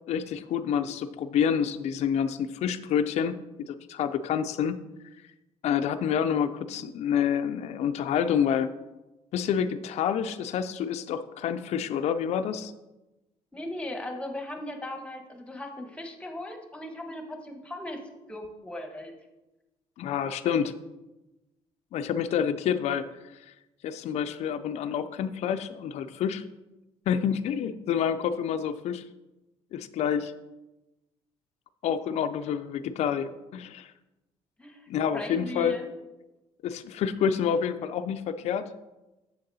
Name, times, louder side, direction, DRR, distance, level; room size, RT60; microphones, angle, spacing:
voice 1, 0.1-3.4 3.7-4.8 5.6-8.7 9.3-12.7 20.0-20.7 21.9-23.1 23.3-23.5 23.8-26.4 27.1-29.0 29.7-30.3 31.8-33.9 34.9-35.8 36.6-38.7, left 8 dB, 60° left, 9 dB, 0.4 m, -28 dB
voice 2, 13.5-18.0 18.3-19.1 34.6-34.9 35.1-35.9, left 1 dB, 10° left, 4 dB, 1.2 m, -38 dB
6.9 x 6.6 x 4.1 m, 1.0 s
cardioid pair, 100°, 12 cm